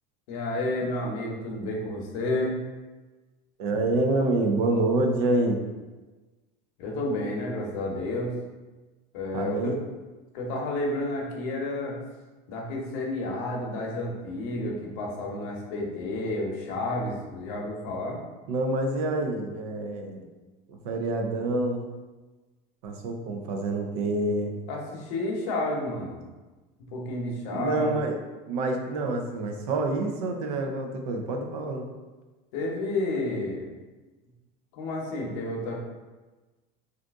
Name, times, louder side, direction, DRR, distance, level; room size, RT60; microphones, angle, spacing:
voice 1, 0.3-2.6 6.8-8.3 9.1-9.7 10.3-12.0 12.5-18.2 24.7-26.2 26.9-28.0 32.5-33.7 34.7-35.8, left 2 dB, 65° left, -1 dB, 0.8 m, -31 dB
voice 2, 3.6-5.6 9.3-9.8 18.5-20.2 20.7-22.0 22.8-24.5 27.5-28.1 28.5-31.9, right 2 dB, 80° right, 3 dB, 0.5 m, -27 dB
2.6 x 2.4 x 3.5 m, 1.2 s
cardioid pair, 175°, 19 cm